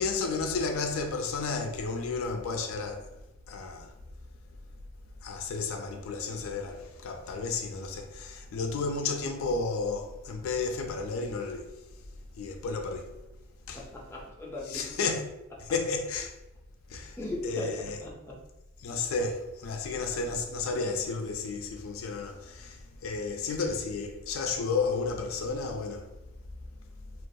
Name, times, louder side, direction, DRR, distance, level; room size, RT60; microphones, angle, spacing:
voice 1, 0.0-3.1 3.5-4.0 5.2-11.7 12.4-13.1 13.7-13.9 14.6-15.3 15.6-16.4 16.9-17.2 17.4-18.0 18.8-26.1, left 4 dB, 80° left, 0.4 m, -32 dB
voice 2, 13.8-14.9 17.2-18.4, left 1 dB, 10° left, 0.4 m, -37 dB
2.2 x 2.2 x 2.6 m
head